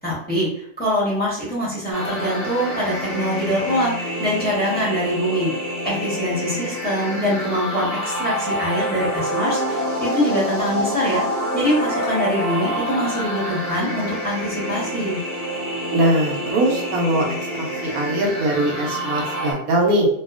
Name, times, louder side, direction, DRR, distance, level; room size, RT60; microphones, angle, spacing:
voice 1, 0.0-5.5 5.8-15.2, equal, 10° left, -8 dB, 0.8 m, -24 dB
sound 1, 1.9-19.5, equal, 20° right, 0.7 m, -27 dB
voice 2, 15.9-17.3 17.5-20.1, right 1 dB, 70° right, -1 dB, 0.9 m, -21 dB
2.7 x 2.3 x 2.4 m, 0.68 s
omnidirectional pair, 1.9 m